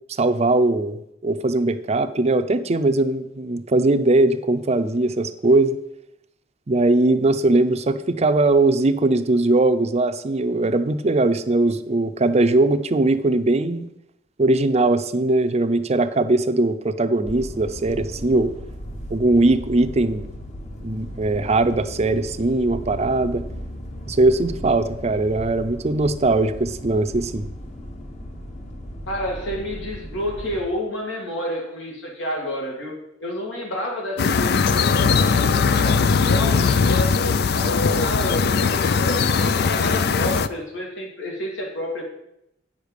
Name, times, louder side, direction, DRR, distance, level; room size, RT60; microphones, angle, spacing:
voice 1, 0.2-5.8 6.7-13.9 14.4-18.5 19.1-20.3 20.8-23.4 24.1-27.5, right 2 dB, 35° right, 10 dB, 0.5 m, -20 dB
sound 1, 17.2-30.6, equal, 40° left, 1.2 m, -36 dB
voice 2, 29.1-32.9 33.2-42.0, equal, 80° left, 0 dB, 2.4 m, -30 dB
sound 2, 34.2-40.5, left 5 dB, 55° left, 0.4 m, -19 dB
8.9 x 6.5 x 5.1 m, 0.81 s
head